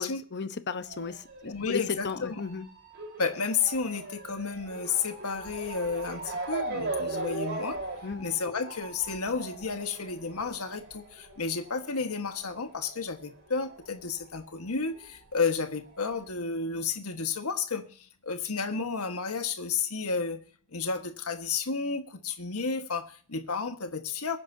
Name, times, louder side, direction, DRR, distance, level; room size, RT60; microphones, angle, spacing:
voice 1, 0.0-2.7 8.0-8.3, left 5 dB, 50° left, 0.9 m, -35 dB
Motor vehicle (road) / Siren, 0.8-13.9 14.1-15.3 15.9-16.0 16.3-16.4, right 2 dB, 50° right, 4.3 m, -39 dB
voice 2, 1.4-2.4 3.2-7.8 8.2-20.4 20.7-24.4, left 5 dB, 80° left, 1.5 m, -32 dB
24.0 x 10.0 x 2.8 m
head